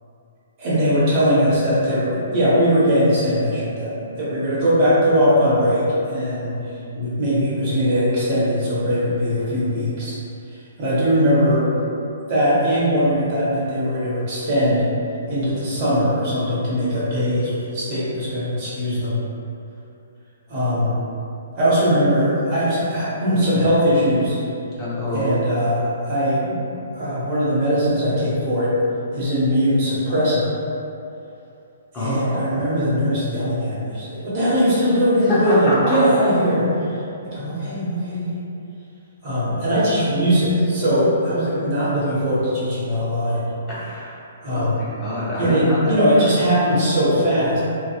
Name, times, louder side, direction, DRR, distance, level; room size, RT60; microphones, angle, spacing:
voice 1, 0.6-6.6 6.9-10.2 10.8-11.7 12.3-14.9 15.3-19.2 20.5-21.0 21.6-24.4 25.1-26.6 26.9-28.7 29.1-30.5 31.9-38.3 39.2-43.5 44.4-44.8 45.4-47.6, equal, 35° right, -10 dB, 1.0 m, -20 dB
voice 2, 24.8-25.3 31.9-32.6 35.3-36.0 43.7-44.2 44.5-45.9, left 1 dB, 15° left, -10 dB, 0.8 m, -25 dB
2.7 x 2.2 x 2.3 m, 2.7 s
figure-of-eight pair, 125°, 0 cm